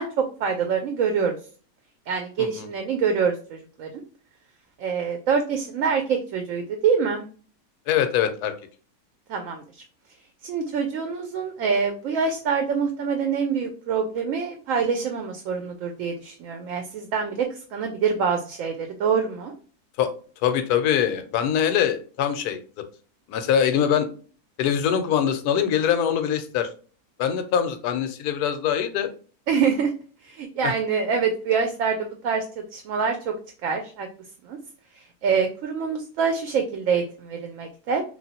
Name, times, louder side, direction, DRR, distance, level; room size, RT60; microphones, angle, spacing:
voice 1, 0.0-1.4 2.1-4.0 4.8-7.2 9.3-9.6 10.4-19.5 29.5-29.9 30.2-32.4 32.7-33.3 33.6-34.1 34.4-34.6 35.2-38.0, right 6 dB, 70° right, 4 dB, 0.8 m, -25 dB
voice 2, 7.9-8.5 20.0-20.1 20.4-22.6 23.3-24.1 24.6-26.7 27.2-29.1 30.6-30.7, left 9 dB, 90° left, 9 dB, 1.1 m, -23 dB
3.1 x 2.6 x 2.7 m, 0.39 s
omnidirectional pair, 1.6 m